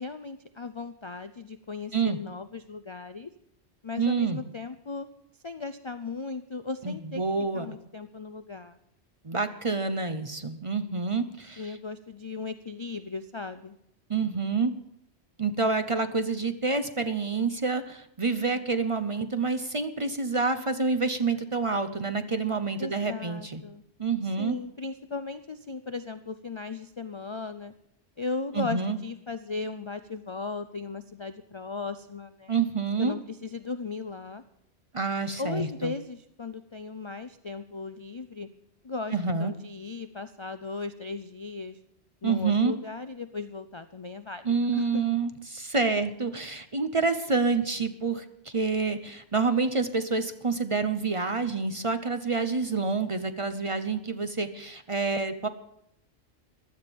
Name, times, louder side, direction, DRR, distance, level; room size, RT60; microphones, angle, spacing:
voice 1, 0.0-3.3 3.8-5.1 5.4-7.2 7.5-8.8 11.6-13.8 22.8-23.8 24.4-27.7 28.2-32.5 33.0-34.4 35.4-38.5 38.8-41.8 42.2-45.0, left 4 dB, 40° left, 11 dB, 0.4 m, -37 dB
voice 2, 4.0-4.4 6.8-7.8 9.2-11.6 14.1-14.8 15.4-23.6 24.0-24.6 28.5-29.0 32.5-33.1 34.9-35.9 39.1-39.5 42.2-42.7 44.4-55.5, right 4 dB, 35° right, 9 dB, 0.7 m, -28 dB
16.0 x 12.0 x 5.2 m, 0.76 s
omnidirectional pair, 1.2 m